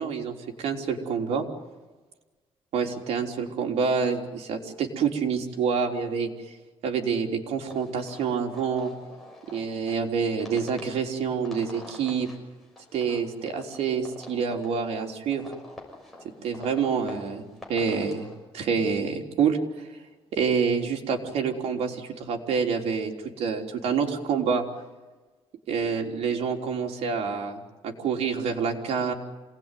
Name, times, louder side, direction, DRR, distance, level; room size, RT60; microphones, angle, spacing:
voice 1, 0.0-1.5 2.7-6.5 6.8-8.9 9.5-12.3 12.9-15.5 16.4-17.4 17.7-18.3 18.5-19.9 20.3-23.1 23.4-24.6 25.7-29.1, right 6 dB, 75° right, 2 dB, 3.7 m, -27 dB
sound 1, 7.7-18.4, left 1 dB, ahead, 6.4 m, -47 dB
27.0 x 19.0 x 9.3 m, 1.2 s
cardioid pair, 160°, 11 cm